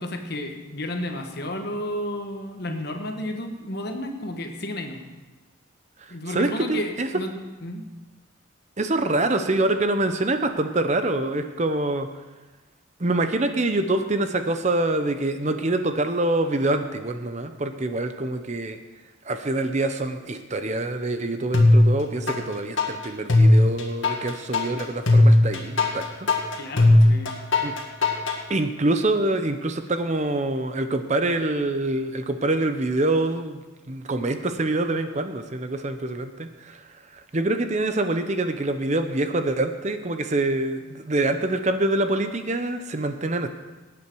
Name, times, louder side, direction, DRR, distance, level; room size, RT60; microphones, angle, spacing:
voice 1, 0.0-5.0 6.1-7.9 26.6-27.4, left 1 dB, 50° left, 4 dB, 1.4 m, -32 dB
voice 2, 6.3-7.1 8.8-12.1 13.0-18.8 19.2-26.3 27.6-27.7 28.5-36.8 37.1-43.5, right 2 dB, 35° right, 8 dB, 0.7 m, -25 dB
sound 1, 21.5-22.4 22.8-28.4, left 2 dB, 65° left, 1.9 m, -17 dB
18.5 x 8.6 x 4.7 m, 1.2 s
head